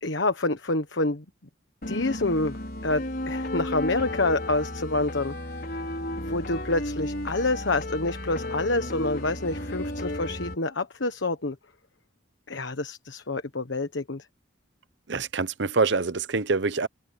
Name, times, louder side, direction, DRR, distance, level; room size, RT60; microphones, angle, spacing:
voice 1, 0.0-1.2 1.9-2.6 2.8-5.3 6.2-11.6 12.5-14.2, left 2 dB, 75° left, 1.3 m, -27 dB
sound 1, 1.8-10.6, left 1 dB, 50° left, 5.3 m, -33 dB
voice 2, 15.1-16.9, right 4 dB, 65° right, 0.8 m, -25 dB
open air
head